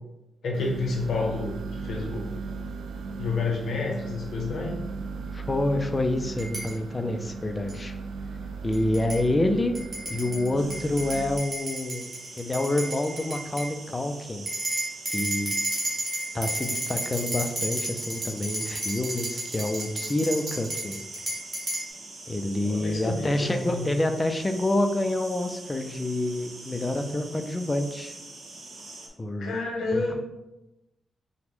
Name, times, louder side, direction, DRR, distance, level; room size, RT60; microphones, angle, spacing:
voice 1, 0.4-2.4 3.2-4.8 22.6-23.9 29.4-30.1, left 3 dB, 80° left, -1 dB, 0.7 m, -30 dB
sound 1, 0.5-11.4, right 4 dB, 90° right, 0.4 m, -37 dB
voice 2, 5.3-7.9 8.6-9.7 10.1-12.1 12.4-14.4 15.1-15.6 16.3-21.0 22.3-28.2 29.2-29.6 29.9-30.1, left 1 dB, 20° left, 6 dB, 0.3 m, -27 dB
sound 2, 6.4-6.7 7.7-7.8 8.7-9.2 9.7-13.7 14.5-21.9, right 1 dB, 25° right, 1.3 m, -32 dB
sound 3, 10.6-29.1, right 2 dB, 65° right, 0.9 m, -44 dB
5.7 x 2.1 x 3.5 m, 0.96 s
wide cardioid pair, 155°, 0 cm